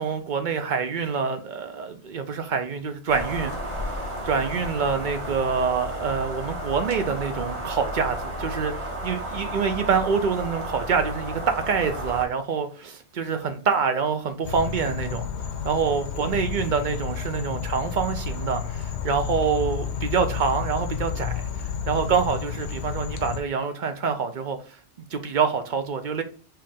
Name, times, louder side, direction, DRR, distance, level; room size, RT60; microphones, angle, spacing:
voice 1, 0.0-3.5 3.9-15.2 15.6-21.4 21.9-24.6 25.1-26.2, right 6 dB, 50° right, 0.6 m, -26 dB
sound 1, 3.1-12.3, equal, 25° right, 1.3 m, -33 dB
sound 2, 14.4-23.4, left 7 dB, 70° left, 0.9 m, -31 dB
4.5 x 3.2 x 3.6 m
omnidirectional pair, 1.2 m